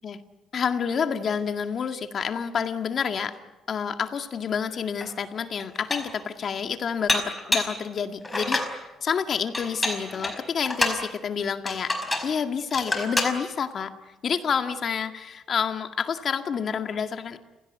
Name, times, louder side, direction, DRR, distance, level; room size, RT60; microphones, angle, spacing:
voice 1, 0.5-3.4 3.7-12.0 12.2-17.4, left 7 dB, 55° left, 8 dB, 2.0 m, -29 dB
Dishes pots and pans, 5.0-5.1 5.6-6.2 7.1-7.8 8.2-8.7 9.5-11.0 11.7-12.3 12.7-13.4, left 2 dB, 15° left, 5.1 m, -27 dB
30.0 x 17.0 x 9.4 m, 1.1 s
cardioid pair, 90°, 0 cm